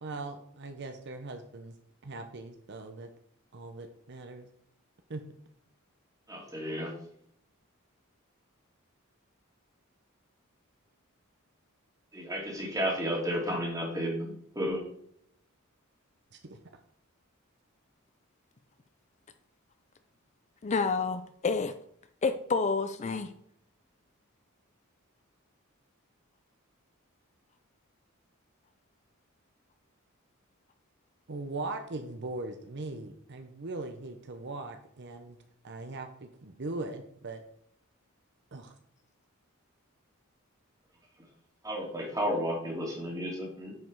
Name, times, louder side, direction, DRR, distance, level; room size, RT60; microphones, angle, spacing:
voice 1, 0.0-1.7 2.0-3.1 3.5-4.5 5.1-5.2 16.4-16.6 31.3-35.4 35.6-37.4 38.5-38.7, right 2 dB, 55° right, 7 dB, 0.8 m, -40 dB
voice 2, 6.3-6.9 12.1-14.8 41.6-43.7, equal, 15° right, -2 dB, 2.7 m, -32 dB
voice 3, 20.6-21.7 22.2-23.3, left 4 dB, 35° left, 10 dB, 0.5 m, -29 dB
9.4 x 5.2 x 4.7 m, 0.69 s
head